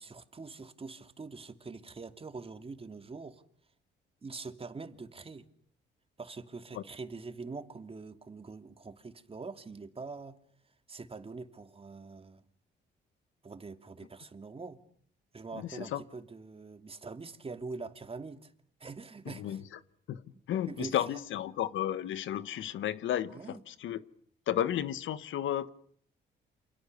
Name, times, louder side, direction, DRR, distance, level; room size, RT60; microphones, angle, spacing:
voice 1, 0.0-3.4 4.2-5.5 6.2-10.4 10.9-12.4 13.4-14.8 15.3-18.5 18.8-19.6 20.3-21.2 23.3-23.6, right 4 dB, 30° right, 2.7 m, -44 dB
voice 2, 15.5-16.0 19.3-19.6 20.1-20.2 20.5-24.0 24.5-25.7, left 11 dB, 75° left, 1.4 m, -33 dB
29.0 x 28.0 x 6.8 m
cardioid pair, 90°, 20 cm